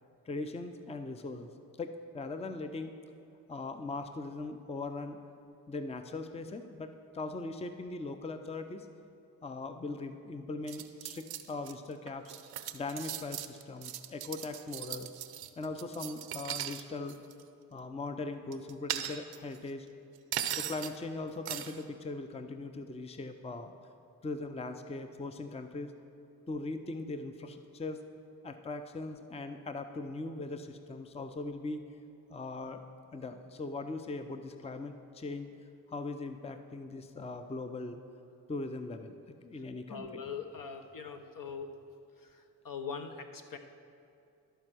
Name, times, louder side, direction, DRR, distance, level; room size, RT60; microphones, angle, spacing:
voice 1, 0.3-1.5 1.8-2.9 3.5-5.2 5.7-8.9 9.4-12.3 12.7-15.1 15.6-17.2 17.7-19.9 20.6-23.7 24.2-25.9 26.5-28.0 28.4-31.8 32.3-32.8 33.1-35.5 35.9-38.0 38.5-40.2, left 3 dB, 15° left, 8 dB, 0.5 m, -40 dB
sound 1, 10.7-11.7 12.1-16.8 17.1-17.4 18.5-19.6 20.3-21.0 21.5-21.8, right 11 dB, 80° right, 0.6 m, -38 dB
voice 2, 39.9-41.8 42.2-43.6, left 6 dB, 55° left, 6 dB, 0.9 m, -42 dB
12.0 x 4.5 x 6.2 m, 2.6 s
supercardioid pair, 45°, 38 cm